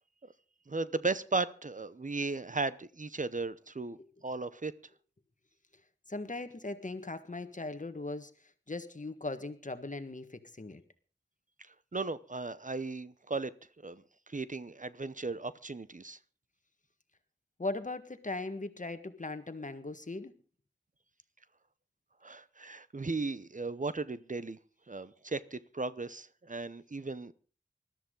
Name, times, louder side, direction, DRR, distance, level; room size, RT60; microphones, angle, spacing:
voice 1, 0.7-4.0 4.2-4.7 11.9-13.5 13.8-16.2 22.2-24.6 24.9-27.3, right 3 dB, 45° right, 0.8 m, -36 dB
voice 2, 6.1-10.8 17.6-20.3, left 2 dB, 45° left, 1.6 m, -39 dB
20.5 x 13.0 x 3.8 m
wide cardioid pair, 55°, 18 cm